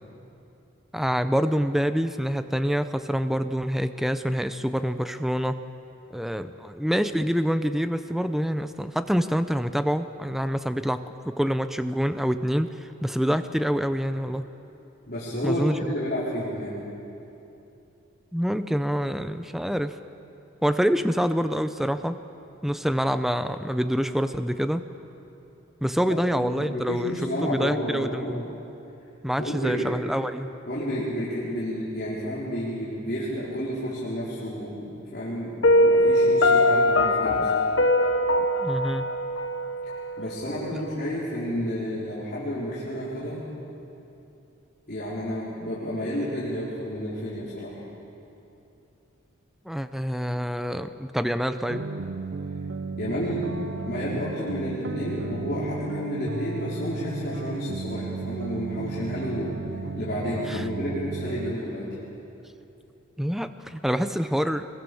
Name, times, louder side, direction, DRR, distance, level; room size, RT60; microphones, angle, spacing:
voice 1, 0.9-5.6 6.1-14.5 15.4-15.8 18.3-20.0 20.6-22.2 22.6-24.8 25.8-27.1 27.4-28.4 29.2-30.5 38.6-39.1 40.7-40.8 49.6-51.9 57.3-57.4 60.5-60.7 63.2-64.7, equal, ahead, 10 dB, 0.5 m, -26 dB
voice 2, 15.1-16.8 26.3-28.4 29.4-29.9 30.7-35.5 35.8-37.5 40.2-43.4 44.9-47.8 53.0-53.4 53.9-59.5 59.9-61.8, equal, 45° left, -10 dB, 4.5 m, -31 dB
Piano, 35.6-40.6, left 1 dB, 60° left, 1.2 m, -21 dB
sound 1, 51.7-61.6, right 3 dB, 55° right, 0.7 m, -34 dB
24.0 x 22.5 x 7.0 m, 2.8 s
head